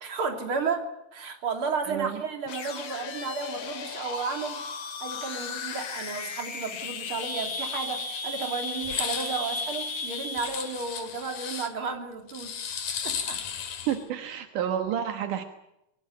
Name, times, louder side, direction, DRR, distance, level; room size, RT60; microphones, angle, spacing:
voice 1, 0.0-4.6 5.0-13.5, right 5 dB, 40° right, 5 dB, 3.8 m, -33 dB
voice 2, 1.8-2.2 13.9-15.4, right 9 dB, 75° right, 7 dB, 2.8 m, -29 dB
sound 1, 2.5-10.7, left 4 dB, 55° left, 3.0 m, -35 dB
sound 2, 8.8-9.4 10.4-11.7 12.3-14.0, left 8 dB, 70° left, 3.6 m, -34 dB
22.5 x 20.0 x 9.2 m, 0.84 s
omnidirectional pair, 3.8 m